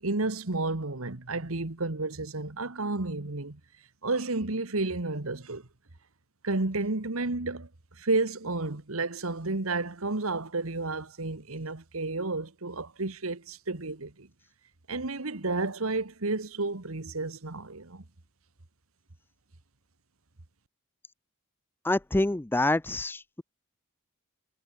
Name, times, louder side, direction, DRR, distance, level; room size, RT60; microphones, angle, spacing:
voice 1, 0.0-3.6 4.0-5.7 6.4-7.7 7.9-14.3 14.9-18.0, right 3 dB, 70° right, 1.7 m, -31 dB
voice 2, 21.8-23.4, left 2 dB, 10° left, 0.5 m, -27 dB
head